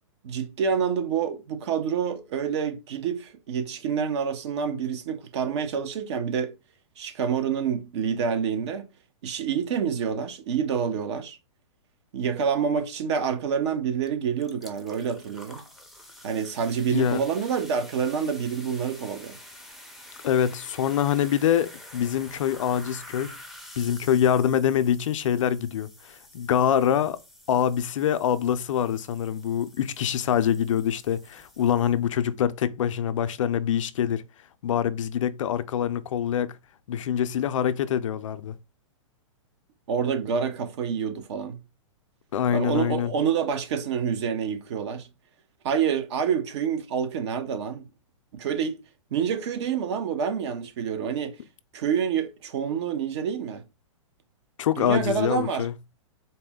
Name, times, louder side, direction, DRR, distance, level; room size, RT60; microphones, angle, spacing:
voice 1, 0.2-6.5 7.0-8.9 9.2-11.4 12.1-15.6 16.2-19.4 39.9-41.6 42.5-45.1 45.6-47.9 48.3-48.8 49.1-51.3 51.7-53.6 54.8-55.7, right 7 dB, 60° right, 0.8 m, -27 dB
sound 1, 14.0-14.1 14.4-32.1, left 1 dB, ahead, 0.6 m, -48 dB
voice 2, 16.9-17.2 20.2-23.3 23.8-27.2 27.5-34.2 34.6-36.5 36.9-38.5 42.3-43.1 54.6-55.7, left 9 dB, 75° left, 0.5 m, -25 dB
4.1 x 2.1 x 3.6 m
hypercardioid pair, 135°, 17 cm